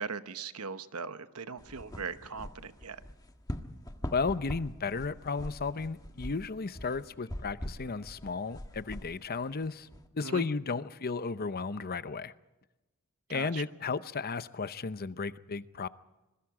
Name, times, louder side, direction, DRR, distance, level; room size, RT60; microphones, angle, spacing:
voice 1, 0.0-3.0 10.2-10.5 13.3-13.6, right 5 dB, 80° right, 11 dB, 1.1 m, -39 dB
sound 1, 1.6-10.1, equal, 15° left, 1.5 m, -43 dB
voice 2, 4.1-9.9 10.1-12.3 13.3-15.9, left 4 dB, 45° left, 14 dB, 0.7 m, -34 dB
26.0 x 23.0 x 4.9 m, 1.0 s
head